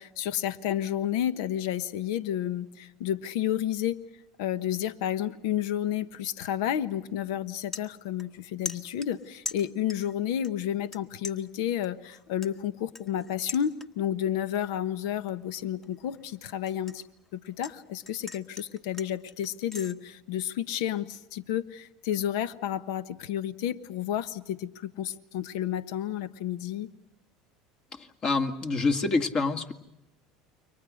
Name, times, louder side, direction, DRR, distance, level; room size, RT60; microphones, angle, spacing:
voice 1, 0.0-4.0 4.4-17.0 17.3-26.9, left 10 dB, 75° left, 15 dB, 1.1 m, -31 dB
sound 1, 6.9-7.0 7.4-8.4 8.7-10.1 10.4-11.0 11.2-14.2 14.5-14.9 15.3-17.8 18.0-19.9, left 3 dB, 15° left, 1.4 m, -41 dB
voice 2, 27.9-29.7, left 3 dB, 35° left, 8 dB, 2.2 m, -27 dB
29.5 x 24.0 x 6.4 m, 0.91 s
supercardioid pair, 95°, 2 cm